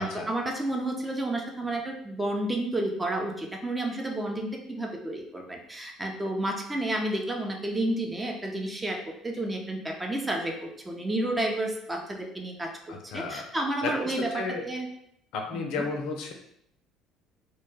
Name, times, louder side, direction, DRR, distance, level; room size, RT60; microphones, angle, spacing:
voice 1, 0.0-12.7 13.1-14.9 15.5-15.8, right 1 dB, 15° right, 2 dB, 0.5 m, -31 dB
voice 2, 12.9-13.5 13.8-14.6 15.3-16.3, left 4 dB, 70° left, 2 dB, 0.4 m, -33 dB
2.1 x 2.1 x 3.2 m, 0.72 s
hypercardioid pair, 70°, 0 cm